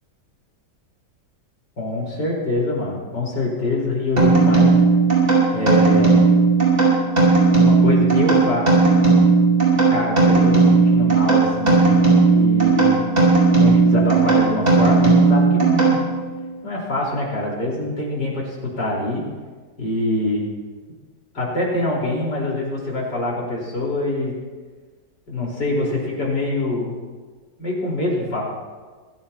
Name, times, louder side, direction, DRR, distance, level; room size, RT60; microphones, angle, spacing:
voice 1, 1.8-4.7 5.5-6.2 7.6-8.9 9.9-12.0 12.3-13.0 13.6-16.0 16.6-19.2 19.8-20.4 21.3-24.3 25.3-27.0 27.6-28.4, left 2 dB, 80° left, -4 dB, 5.3 m, -24 dB
sound 1, 4.2-16.3, right 4 dB, 40° right, 5.9 m, -16 dB
25.0 x 16.0 x 3.0 m, 1.4 s
omnidirectional pair, 1.9 m